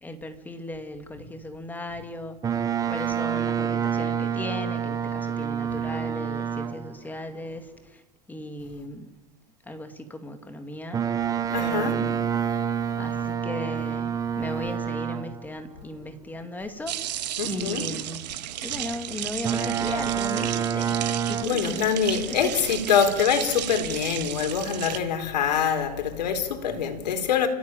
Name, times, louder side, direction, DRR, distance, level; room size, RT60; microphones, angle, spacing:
voice 1, 0.0-8.0 8.3-9.1 9.6-11.3 11.6-12.2 13.0-17.0 17.4-18.3 18.6-21.0 21.3-22.0 22.3-22.5, left 1 dB, 10° left, 2.2 m, -37 dB
Boat Water vehicle, 2.4-7.0 10.9-15.5 19.4-21.4, right 8 dB, 15° right, 1.2 m, -27 dB
voice 2, 11.5-12.0 17.4-17.9 21.4-27.5, left 7 dB, 85° left, 4.4 m, -25 dB
sound 1, 16.9-25.0, right 12 dB, 80° right, 2.2 m, -33 dB
29.5 x 15.0 x 9.1 m
supercardioid pair, 140°, 21 cm